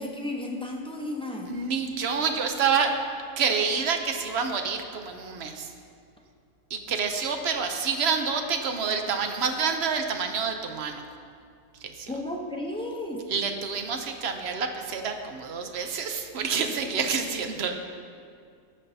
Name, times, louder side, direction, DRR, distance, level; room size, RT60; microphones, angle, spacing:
voice 1, 0.0-1.5 12.1-13.3, left 1 dB, 5° left, -1 dB, 0.4 m, -33 dB
voice 2, 1.5-2.9 3.4-5.7 6.7-11.0 11.8-12.1 13.3-17.7, right 5 dB, 60° right, 5 dB, 0.8 m, -28 dB
15.5 x 5.3 x 2.7 m, 2.3 s
omnidirectional pair, 1.4 m